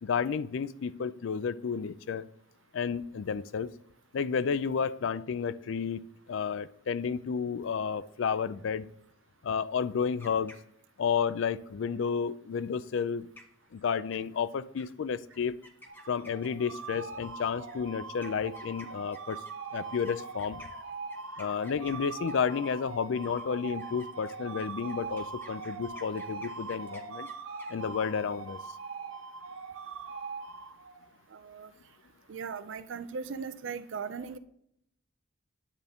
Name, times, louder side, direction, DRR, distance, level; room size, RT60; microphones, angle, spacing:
voice 1, 0.0-2.3 2.7-3.7 4.1-6.0 6.3-8.9 9.4-10.5 11.0-13.2 13.7-15.6 16.1-19.4 19.7-20.6 21.4-27.3 27.7-28.6, left 6 dB, 65° left, 17 dB, 0.4 m, -31 dB
sound 1, 10.0-11.1 13.0-13.1 13.4-13.7 14.1-14.5 14.8-14.9 15.3-16.7 17.6-22.8 23.2-27.7, left 1 dB, 10° left, 0.9 m, -53 dB
sound 2, 15.9-31.1, right 4 dB, 85° right, 0.8 m, -42 dB
voice 2, 31.3-31.7 32.3-34.4, right 5 dB, 60° right, 12 dB, 0.4 m, -38 dB
10.0 x 7.9 x 3.5 m, 0.72 s
head